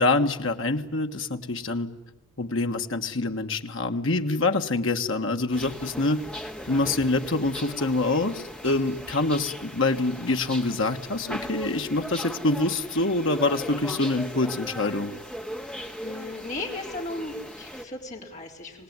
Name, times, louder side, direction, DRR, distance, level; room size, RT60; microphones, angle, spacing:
voice 1, 0.0-1.9 2.4-6.2 6.7-15.1, left 2 dB, 60° left, 5 dB, 1.5 m, -25 dB
sound 1, 5.5-17.8, equal, 5° left, 1.5 m, -38 dB
voice 2, 16.0-18.8, left 2 dB, 35° left, 0 dB, 4.0 m, -36 dB
26.0 x 19.0 x 9.5 m, 1.1 s
head